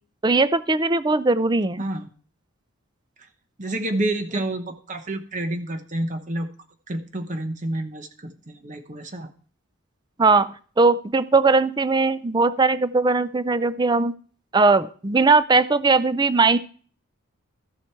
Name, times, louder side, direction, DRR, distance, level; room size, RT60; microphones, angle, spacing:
voice 1, 0.2-1.9 10.2-14.1 14.5-16.6, right 3 dB, 20° right, 14 dB, 0.5 m, -19 dB
voice 2, 3.6-6.5 6.9-9.3, right 1 dB, 35° right, 8 dB, 1.0 m, -29 dB
13.0 x 7.5 x 4.5 m, 0.43 s
head